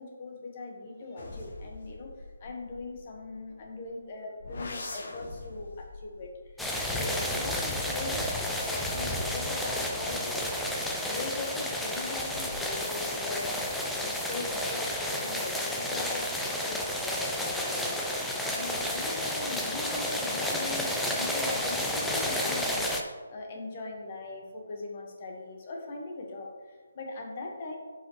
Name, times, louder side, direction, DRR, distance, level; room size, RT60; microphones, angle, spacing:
voice 1, 0.0-2.1 2.4-6.3 6.6-10.7 10.9-27.8, left 3 dB, 35° left, 1 dB, 1.5 m, -40 dB
sound 1, 1.2-3.9 4.4-7.5 8.1-11.1 11.9-12.9 13.2-13.7, left 3 dB, 55° left, 1.5 m, -45 dB
sound 2, 6.6-23.0, left 1 dB, 5° left, 0.6 m, -31 dB
11.0 x 5.2 x 3.2 m, 1.5 s
figure-of-eight pair, 145°, 0 cm